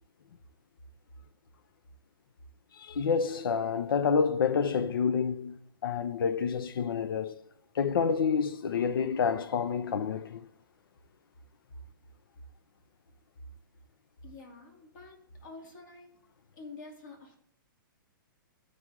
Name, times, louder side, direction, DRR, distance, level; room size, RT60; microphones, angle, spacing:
voice 1, 2.8-7.4 7.7-10.5, left 6 dB, 80° left, 0.6 m, -28 dB
voice 2, 14.2-16.1 16.5-17.4, left 3 dB, 60° left, 2.6 m, -48 dB
13.5 x 4.9 x 3.6 m
hypercardioid pair, 145°, 12 cm